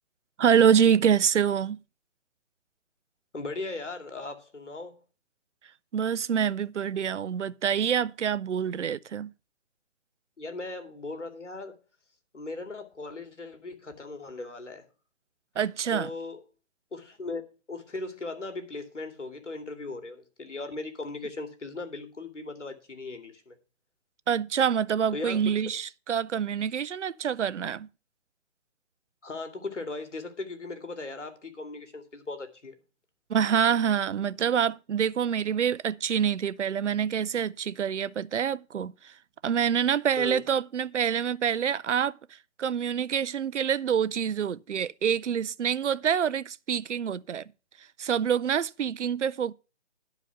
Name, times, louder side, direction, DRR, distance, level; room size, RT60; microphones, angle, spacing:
voice 1, 0.4-1.8 5.9-9.3 15.6-16.1 24.3-27.9 33.3-39.1 39.4-42.2 42.6-47.4 48.0-49.5, right 8 dB, 85° right, 0.6 m, -26 dB
voice 2, 3.3-5.0 10.4-11.8 12.3-14.9 15.9-16.4 16.9-17.4 17.7-23.6 25.1-25.7 29.2-32.7 40.2-40.4, left 3 dB, 90° left, 2.6 m, -38 dB
11.5 x 4.9 x 6.8 m
hypercardioid pair, 150°, 35 cm